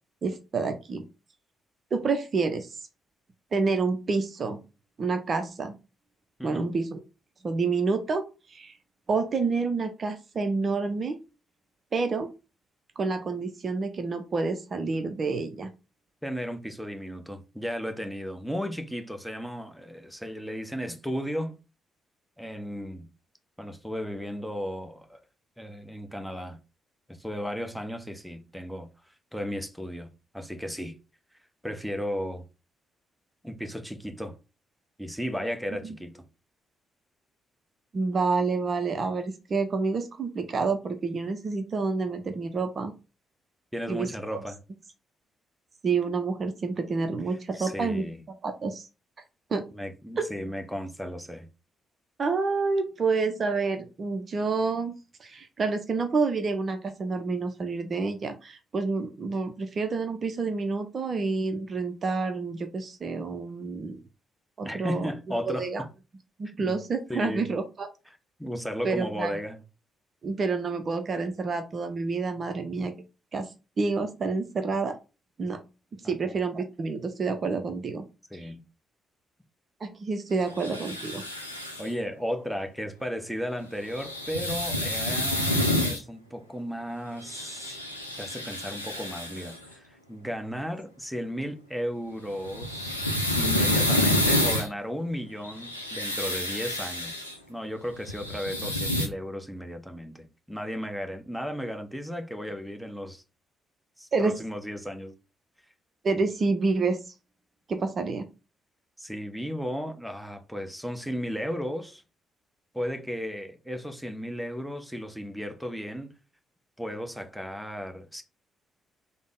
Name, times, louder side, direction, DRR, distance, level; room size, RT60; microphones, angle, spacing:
voice 1, 0.2-1.1 1.9-2.8 3.5-4.6 5.0-5.8 6.4-7.0 7.4-8.7 9.1-11.2 11.9-12.3 13.0-15.7 35.8-35.9 37.9-42.9 43.9-44.4 45.8-48.0 48.4-48.9 49.5-49.7 52.2-64.0 64.6-65.1 65.5-65.8 66.4-67.9 68.8-69.3 70.2-72.9 73.3-75.0 75.4-75.6 76.0-78.0 78.3-78.5 79.8-81.2 104.1-104.4 106.0-107.0 107.7-108.3, right 4 dB, 40° right, 0.5 m, -28 dB
voice 2, 6.4-6.8 16.2-21.6 22.4-23.1 23.6-25.2 25.6-26.6 27.1-28.9 29.3-31.0 31.6-32.5 33.4-34.3 35.0-36.3 43.7-44.6 47.6-48.2 49.7-51.5 64.6-65.7 66.4-66.8 67.1-67.5 68.4-69.6 76.0-76.4 78.3-78.6 81.8-87.8 88.2-93.1 93.3-103.2 104.0-105.2 109.0-112.0 112.7-116.1 116.8-118.2, equal, ahead, 0.7 m, -35 dB
sound 1, 80.5-81.9 83.9-86.0 87.2-89.6 92.3-94.7 95.4-97.3 98.0-99.1, left 1 dB, 90° left, 0.4 m, -28 dB
3.5 x 2.0 x 3.6 m
figure-of-eight pair, 40°, 0 cm